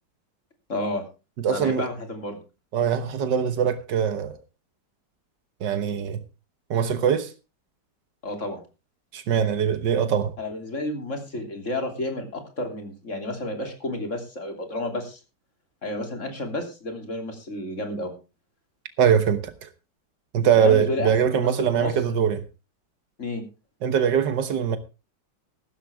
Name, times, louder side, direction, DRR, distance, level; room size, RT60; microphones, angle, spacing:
voice 1, 0.7-1.0 1.5-2.4 8.2-8.6 10.4-15.2 15.8-18.1 20.5-21.9 23.2-23.4, left 2 dB, 45° left, 3.4 m, -31 dB
voice 2, 1.4-1.8 2.7-4.4 5.6-6.2 6.7-7.3 9.1-10.3 19.0-19.5 20.3-22.4 23.8-24.8, right 8 dB, 85° right, 1.8 m, -22 dB
15.0 x 12.5 x 3.5 m
omnidirectional pair, 1.8 m